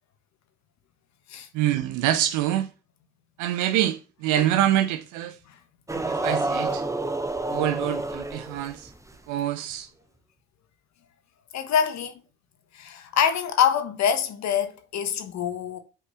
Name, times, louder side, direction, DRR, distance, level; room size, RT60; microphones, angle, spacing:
voice 1, 1.5-2.7 3.4-5.4 5.9-6.8 7.5-8.9 9.3-9.9, right 12 dB, 85° right, 0.6 m, -25 dB
sound 1, 5.9-9.2, right 2 dB, 10° right, 0.8 m, -29 dB
voice 2, 11.5-12.2 12.7-15.8, left 8 dB, 65° left, 1.3 m, -25 dB
5.3 x 4.9 x 6.3 m
supercardioid pair, 60°, 29 cm